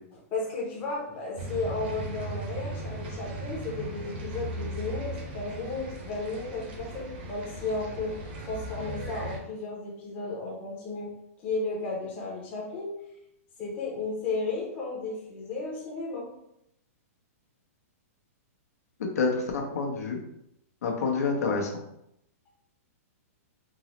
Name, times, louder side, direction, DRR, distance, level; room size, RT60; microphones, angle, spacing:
voice 1, 0.3-11.1 11.4-13.0 13.6-16.3, left 3 dB, 15° left, -4 dB, 0.6 m, -34 dB
sound 1, 1.4-9.4, right 1 dB, 40° right, 0.6 m, -37 dB
voice 2, 19.0-20.2 20.8-21.7, left 4 dB, 85° left, 1 dB, 0.8 m, -28 dB
3.7 x 2.0 x 2.9 m, 0.79 s
hypercardioid pair, 175°, 8 cm